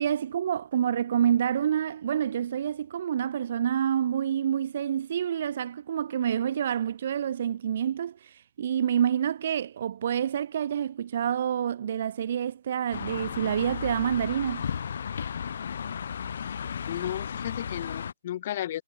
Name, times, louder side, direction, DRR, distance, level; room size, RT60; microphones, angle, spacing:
voice 1, 0.0-14.7, right 9 dB, 35° right, 0.3 m, -28 dB
sound 1, 12.9-18.1, left 7 dB, 45° left, 1.5 m, -34 dB
voice 2, 16.4-18.8, left 12 dB, 30° left, 1.4 m, -34 dB
hypercardioid pair, 175°, 0 cm